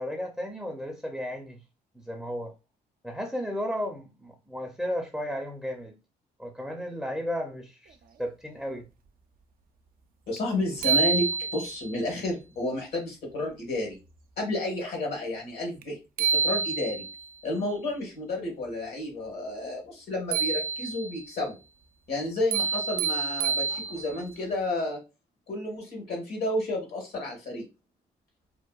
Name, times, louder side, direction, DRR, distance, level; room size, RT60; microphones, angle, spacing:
voice 1, 0.0-1.6 1.9-2.5 3.0-6.0 6.4-8.9, equal, ahead, 0.5 m, -34 dB
voice 2, 10.3-14.0 14.4-17.0 17.4-21.6 22.1-25.0 25.5-27.7, left 1 dB, 65° left, 1.3 m, -31 dB
sound 1, 10.4-10.5 10.8-11.9 15.8-15.9 16.2-17.2 20.3-21.2 22.5-24.2, right 5 dB, 60° right, 0.4 m, -27 dB
2.7 x 2.2 x 2.2 m
supercardioid pair, 65°, 17 cm